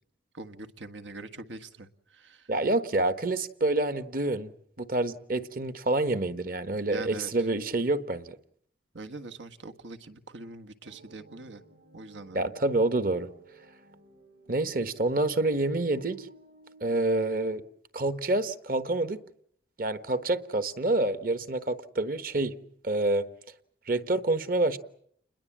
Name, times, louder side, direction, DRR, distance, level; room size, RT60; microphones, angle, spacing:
voice 1, 0.3-2.5 6.9-7.5 8.9-11.6 11.9-12.4, right 2 dB, 85° right, 1.6 m, -43 dB
voice 2, 2.5-4.5 4.8-8.4 12.3-13.3 14.5-16.3 16.8-17.6 17.9-19.2 19.8-22.6 22.8-23.3 23.9-24.8, right 2 dB, 50° right, 1.3 m, -27 dB
sound 1, 10.8-16.9, right 2 dB, 65° right, 4.4 m, -56 dB
29.0 x 21.5 x 7.4 m
head